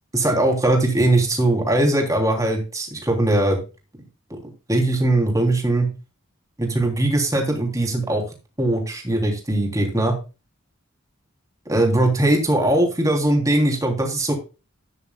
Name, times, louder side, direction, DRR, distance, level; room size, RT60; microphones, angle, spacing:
voice 1, 0.1-3.6 4.3-5.9 6.6-8.2 8.6-10.1 11.7-14.3, right 1 dB, 15° right, 1 dB, 3.2 m, -20 dB
12.0 x 10.0 x 2.3 m, 0.31 s
head